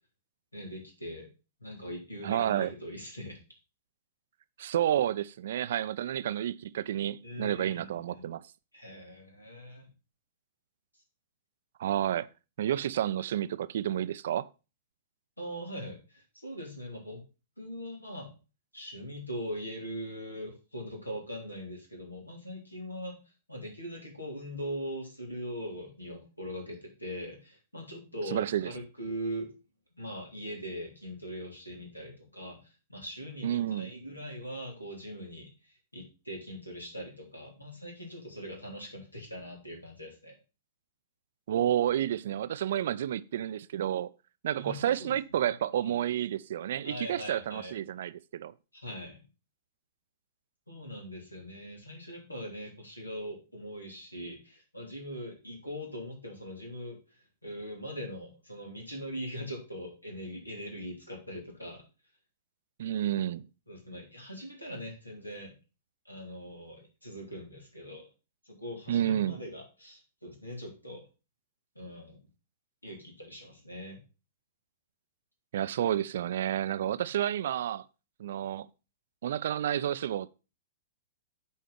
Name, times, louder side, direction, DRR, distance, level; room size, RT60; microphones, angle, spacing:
voice 1, 0.5-1.3 1.6-3.4 7.2-8.2 8.7-9.9 15.4-17.2 17.6-18.3 18.7-23.2 23.5-29.5 30.0-40.4 44.6-45.1 45.7-46.0 46.8-47.8 48.8-49.2 50.7-56.9 57.4-61.8 63.7-65.5 66.0-68.1 68.4-71.0 71.7-72.2 72.8-74.0, equal, 90° left, 3.3 m, -41 dB
voice 2, 2.2-2.7 4.6-8.4 11.8-12.3 12.6-14.5 28.3-28.7 33.4-33.9 41.5-44.1 44.4-48.5 62.8-63.5 68.9-69.4 75.5-77.8 78.2-78.7 79.2-80.3, right 11 dB, 55° right, 0.5 m, -30 dB
8.6 x 4.6 x 5.8 m
figure-of-eight pair, 105°, 0 cm